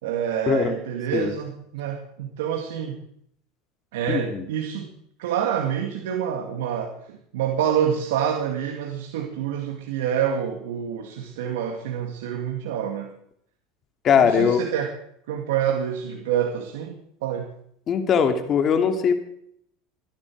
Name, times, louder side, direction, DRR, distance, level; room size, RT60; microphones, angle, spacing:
voice 1, 0.0-3.0 3.9-4.9 5.2-13.1 14.2-14.9 15.3-16.9 17.2-17.5, right 9 dB, 85° right, 3 dB, 2.2 m, -27 dB
voice 2, 4.1-4.4 14.0-14.6 17.9-19.1, left 7 dB, 35° left, 6 dB, 2.6 m, -20 dB
25.5 x 10.5 x 4.8 m, 0.69 s
supercardioid pair, 125°, 0 cm